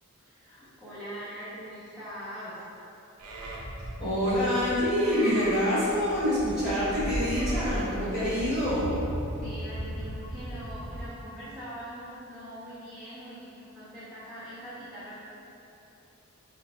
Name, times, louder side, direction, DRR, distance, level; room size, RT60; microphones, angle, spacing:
voice 1, 0.2-2.6 9.4-15.2, equal, ahead, -16 dB, 0.7 m, -42 dB
Livestock farm animals working animals, 3.2-11.1, equal, 90° right, 0.5 m, -36 dB
voice 2, 4.0-8.9, equal, 45° left, -15 dB, 1.2 m, -26 dB
3.7 x 2.1 x 2.9 m, 2.9 s
head